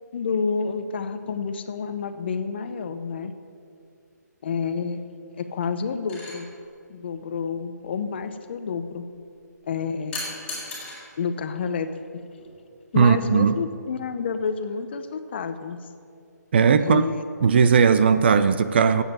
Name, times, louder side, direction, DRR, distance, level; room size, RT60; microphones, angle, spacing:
voice 1, 0.1-3.3 4.4-5.0 5.3-6.5 6.9-9.0 9.7-10.2 11.2-12.2 12.9-15.8 16.8-17.2, left 5 dB, 35° left, 9 dB, 0.7 m, -29 dB
sound 1, 6.1-6.4 10.1-11.0 12.4-12.6, left 2 dB, 10° left, 3.5 m, -34 dB
voice 2, 13.0-13.5 16.5-17.0 17.4-19.0, right 6 dB, 35° right, 11 dB, 0.5 m, -17 dB
10.0 x 8.1 x 9.1 m, 2.3 s
hypercardioid pair, 165°, 10 cm